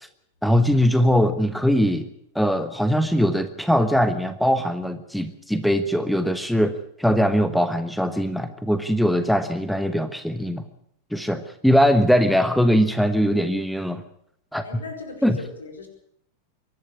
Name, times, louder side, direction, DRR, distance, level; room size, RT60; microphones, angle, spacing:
voice 1, 0.4-2.1 2.3-6.7 7.0-10.6 11.1-14.0 14.5-14.6 15.2-15.4, equal, ahead, 11 dB, 1.2 m, -21 dB
voice 2, 14.6-15.9, left 4 dB, 70° left, 5 dB, 4.8 m, -38 dB
23.5 x 11.5 x 9.8 m, 0.70 s
figure-of-eight pair, 90°, 0 cm